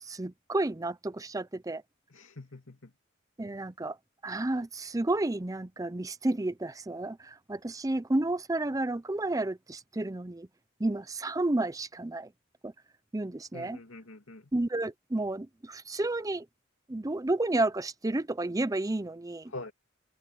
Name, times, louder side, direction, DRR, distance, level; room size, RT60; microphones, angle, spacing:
voice 1, 0.0-1.8 3.4-4.0 4.2-10.5 10.8-12.3 12.6-12.7 13.1-13.8 14.5-16.5 16.9-19.5, right 2 dB, 15° right, 0.6 m, -31 dB
voice 2, 2.1-2.9 13.5-14.5 19.5-19.7, left 2 dB, 75° left, 2.6 m, -44 dB
open air
head